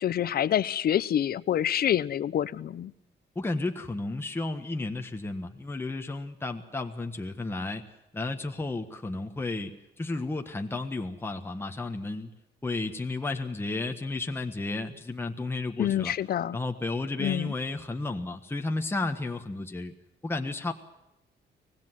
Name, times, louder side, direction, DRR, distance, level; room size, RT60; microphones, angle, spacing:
voice 1, 0.0-2.9 15.8-16.6 17.2-17.5, left 10 dB, 55° left, 18 dB, 0.8 m, -27 dB
voice 2, 3.3-7.8 8.1-9.7 10.0-12.3 12.6-16.1 16.5-19.9 20.2-20.7, left 2 dB, 10° left, 4 dB, 1.4 m, -32 dB
25.0 x 19.0 x 7.6 m, 0.89 s
cardioid pair, 150°, 19 cm